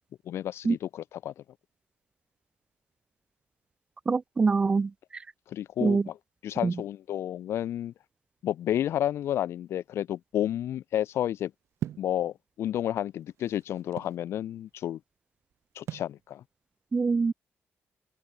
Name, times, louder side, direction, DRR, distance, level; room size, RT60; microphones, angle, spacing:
voice 1, 0.2-1.4 5.5-6.2 6.4-7.9 8.4-11.5 12.0-15.0 15.7-16.4, left 11 dB, 70° left, 1.6 m, -31 dB
voice 2, 4.1-4.9 5.8-6.0 6.6-6.7 16.9-17.3, right 4 dB, 20° right, 0.5 m, -24 dB
sound 1, 11.8-12.2 13.0-14.2 15.9-16.2, right 11 dB, 80° right, 4.8 m, -37 dB
wide cardioid pair, 175°, 5 cm